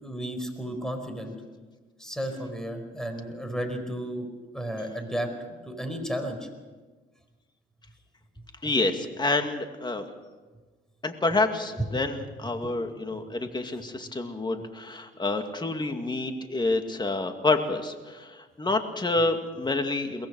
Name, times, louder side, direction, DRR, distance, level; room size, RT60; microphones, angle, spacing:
voice 1, 0.0-1.3 2.0-6.5 11.9-12.0 12.5-12.8 13.1-13.2 15.1-15.2, equal, 5° left, 6 dB, 4.9 m, -34 dB
voice 2, 8.6-10.1 11.0-20.3, left 2 dB, 20° left, 6 dB, 2.3 m, -28 dB
22.5 x 19.5 x 6.4 m, 1.3 s
cardioid pair, 90°, 20 cm